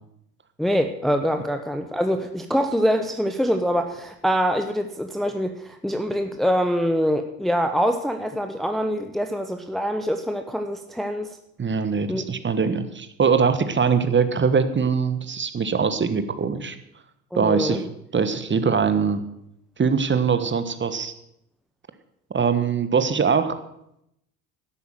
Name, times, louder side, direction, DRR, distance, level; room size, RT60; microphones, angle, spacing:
voice 1, 0.6-11.4 12.1-12.3 17.3-17.8, equal, ahead, 6 dB, 0.9 m, -24 dB
voice 2, 11.6-16.8 17.3-17.8 18.1-19.2 19.8-21.1 22.3-23.5, right 6 dB, 25° right, 11 dB, 1.5 m, -22 dB
11.5 x 8.3 x 7.7 m, 0.79 s
hypercardioid pair, 70°, 46 cm